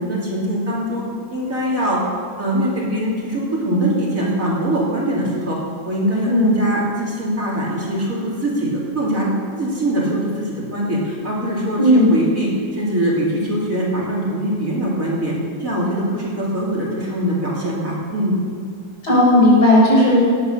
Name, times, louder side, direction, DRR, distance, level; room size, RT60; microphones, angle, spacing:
voice 1, 0.0-2.0 2.4-5.6 5.9-9.3 9.6-15.3 15.6-18.4, right 1 dB, 50° right, -4 dB, 3.4 m, -22 dB
voice 2, 6.2-6.5 11.8-12.1 19.0-20.2, left 1 dB, 65° left, -5 dB, 5.7 m, -13 dB
17.5 x 9.2 x 6.8 m, 2.2 s
omnidirectional pair, 1.9 m